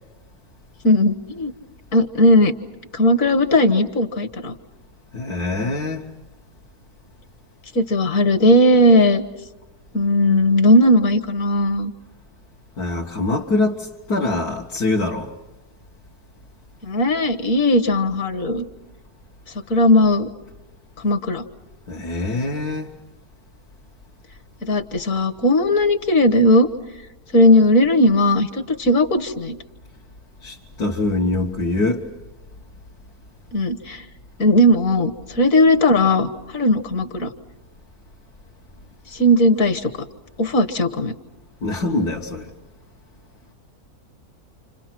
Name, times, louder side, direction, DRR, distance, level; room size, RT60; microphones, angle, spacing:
voice 1, 0.8-1.5 1.9-2.5 2.9-4.5 7.7-9.2 9.9-11.9 16.8-18.6 19.7-20.3 21.0-21.4 24.6-26.7 27.3-29.6 33.5-34.0 34.4-37.3 39.1-39.9 40.4-41.1, left 1 dB, 60° left, 1.7 m, -17 dB
voice 2, 5.1-6.0 12.8-15.3 21.9-22.9 30.4-32.0 41.6-42.5, left 2 dB, 80° left, 2.0 m, -24 dB
29.0 x 26.5 x 6.0 m
omnidirectional pair, 1.6 m